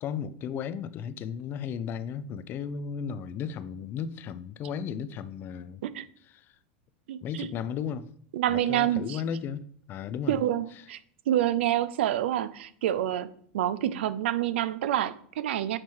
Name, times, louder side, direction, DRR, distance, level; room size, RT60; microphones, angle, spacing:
voice 1, 0.0-5.8 6.2-6.5 7.2-8.1 8.5-10.4 10.7-10.9, left 7 dB, 35° left, 0.4 m, -35 dB
voice 2, 7.1-7.5 8.3-9.2 10.3-11.0 11.3-13.3 13.5-15.8, right 12 dB, 85° right, 0.4 m, -27 dB
7.3 x 3.1 x 4.5 m
supercardioid pair, 130°, 6 cm